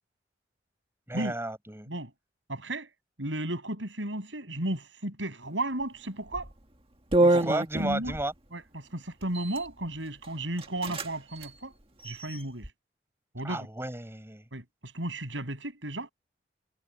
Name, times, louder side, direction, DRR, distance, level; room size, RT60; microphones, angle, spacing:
voice 1, 1.1-1.9 7.3-8.3 13.4-14.4, right 1 dB, 15° right, 7.9 m, -33 dB
voice 2, 2.5-2.9 3.2-6.5 7.2-7.5 7.8-8.1 8.5-11.8 12.0-12.7 13.3-13.7 14.5-16.1, right 1 dB, 85° right, 7.5 m, -34 dB
sound 1, 6.3-6.5 7.1-8.3 9.2-9.7 10.2-10.3 10.6-11.1 11.4-11.5 12.0-12.7, right 2 dB, 30° right, 1.9 m, -26 dB
head